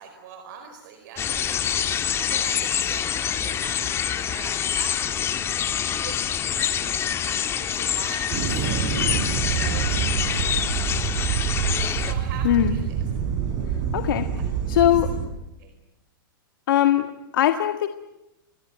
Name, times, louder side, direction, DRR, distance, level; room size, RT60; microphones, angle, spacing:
voice 1, 0.0-1.8 2.2-5.3 5.9-6.2 6.4-9.0 9.4-10.1 11.9-12.8 14.3-14.4 14.7-14.9 15.6-15.7, right 7 dB, 55° right, 6 dB, 4.5 m, -42 dB
sound 1, 1.2-12.1, left 9 dB, 20° left, 1.9 m, -26 dB
sound 2, 8.3-15.3, right 8 dB, 35° right, 5.5 m, -26 dB
voice 2, 13.9-14.3 14.7-15.1 16.7-17.9, left 12 dB, 70° left, 8 dB, 1.8 m, -20 dB
28.5 x 22.5 x 9.2 m, 0.91 s
hypercardioid pair, 145°, 12 cm